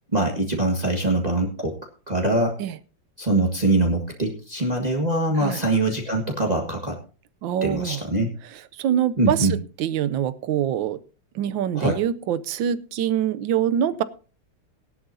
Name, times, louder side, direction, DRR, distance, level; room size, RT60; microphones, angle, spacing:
voice 1, 0.1-1.8 2.1-2.6 3.2-7.0 7.6-8.3 9.2-9.5 11.7-12.0, right 2 dB, 20° right, 1 dB, 1.7 m, -23 dB
voice 2, 7.4-8.0 8.5-9.5 9.8-11.0 11.3-14.0, right 10 dB, 85° right, 16 dB, 1.5 m, -24 dB
17.5 x 11.0 x 2.7 m, 0.36 s
omnidirectional pair, 2.0 m